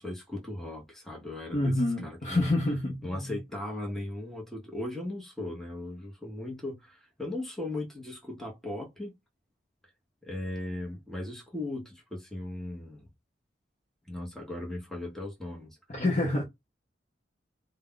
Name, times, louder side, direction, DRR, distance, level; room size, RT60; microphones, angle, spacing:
voice 1, 0.0-1.7 2.0-2.5 3.0-9.1 10.2-13.1 14.1-15.8, left 1 dB, ahead, 0.8 m, -37 dB
voice 2, 1.5-3.4 15.9-16.4, left 2 dB, 40° left, 0.6 m, -27 dB
2.3 x 2.1 x 3.6 m
head